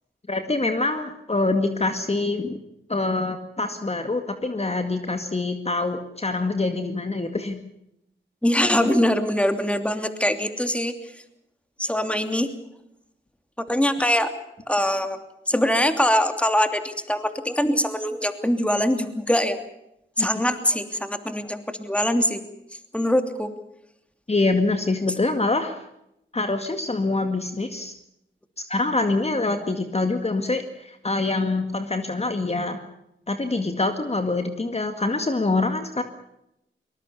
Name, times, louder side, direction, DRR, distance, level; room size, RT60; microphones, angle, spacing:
voice 1, 0.3-2.6 2.9-7.6 20.2-20.3 24.3-25.8 26.3-27.9 28.7-32.8 33.3-36.0, left 2 dB, 30° left, 7 dB, 2.1 m, -25 dB
voice 2, 8.4-10.9 11.8-12.5 13.6-14.3 14.7-15.2 15.5-19.6 20.2-22.4 22.9-23.5, equal, 5° left, 8 dB, 2.9 m, -23 dB
22.5 x 20.0 x 7.1 m, 0.81 s
cardioid pair, 55°, 20 cm